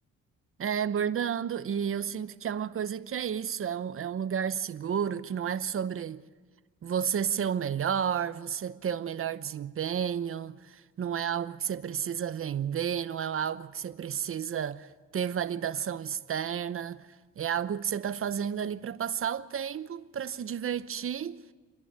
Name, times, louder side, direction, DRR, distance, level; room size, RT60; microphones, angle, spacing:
voice 1, 0.6-6.2 6.8-14.9 15.1-17.1 17.4-21.4, right 8 dB, 45° right, 0.9 m, -31 dB
28.0 x 11.0 x 9.6 m
cardioid pair, 90°, 30 cm